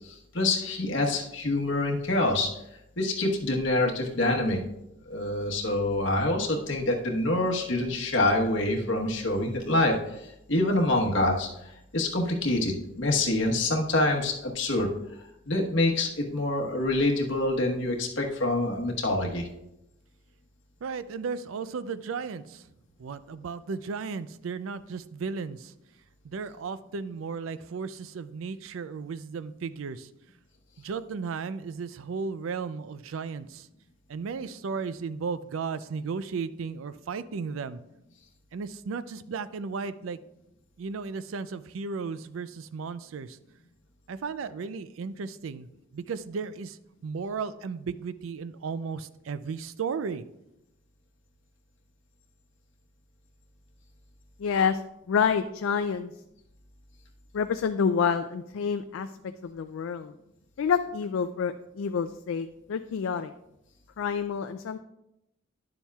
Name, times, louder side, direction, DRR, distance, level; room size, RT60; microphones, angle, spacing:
voice 1, 0.0-2.5 3.0-4.6 5.1-11.5 11.9-14.9 15.5-19.5, left 2 dB, 65° left, 0 dB, 1.2 m, -26 dB
voice 2, 20.8-22.7 23.0-25.7 26.2-30.1 30.8-33.7 34.1-37.8 38.5-40.2 40.8-43.4 44.1-45.7 45.9-50.3, right 5 dB, 75° right, 15 dB, 0.4 m, -35 dB
voice 3, 54.4-54.8 55.1-56.1 57.3-59.1 59.4-60.1 60.6-63.3 64.0-64.8, left 6 dB, 80° left, 9 dB, 0.3 m, -28 dB
10.5 x 7.1 x 2.3 m, 0.86 s
head